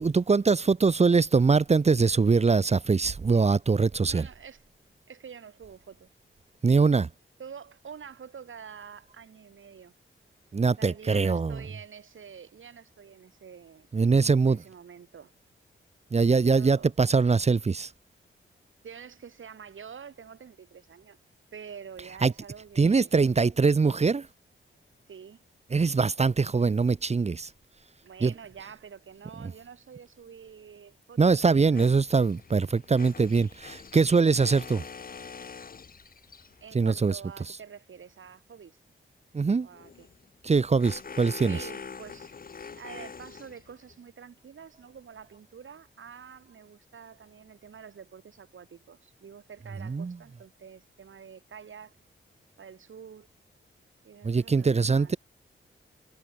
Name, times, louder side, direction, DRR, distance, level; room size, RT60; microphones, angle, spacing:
voice 1, 0.0-4.3 6.6-7.1 10.5-11.6 13.9-14.6 16.1-17.9 22.2-22.3 22.8-24.3 25.7-27.5 28.2-28.3 31.2-34.8 36.7-37.2 39.3-39.7 40.4-41.6 49.9-50.2 54.2-55.2, right 4 dB, 30° right, 0.9 m, -23 dB
voice 2, 4.1-4.6 5.1-6.1 7.4-9.9 10.8-13.9 14.4-15.3 16.4-16.9 18.8-21.2 21.5-23.1 25.1-25.4 28.0-31.8 36.6-38.8 39.6-40.1 41.5-42.3 42.7-52.0 52.6-53.3 54.0-55.2, right 7 dB, 70° right, 4.1 m, -47 dB
sound 1, 31.8-36.7 39.7-44.0, left 5 dB, 45° left, 1.6 m, -44 dB
wide cardioid pair, 170°, 21 cm